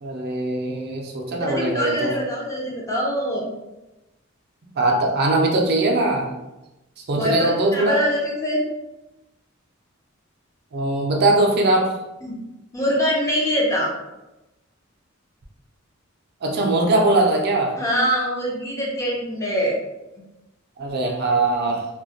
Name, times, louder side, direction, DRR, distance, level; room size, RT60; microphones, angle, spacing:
voice 1, 0.0-2.1 4.8-6.3 7.1-8.0 10.7-11.9 16.4-17.7 20.8-21.9, right 2 dB, 50° right, 1 dB, 0.4 m, -21 dB
voice 2, 1.4-3.5 7.2-8.7 12.2-12.4 12.7-13.9 17.8-19.7, equal, 15° left, -3 dB, 0.5 m, -23 dB
2.2 x 2.1 x 2.7 m, 0.99 s
head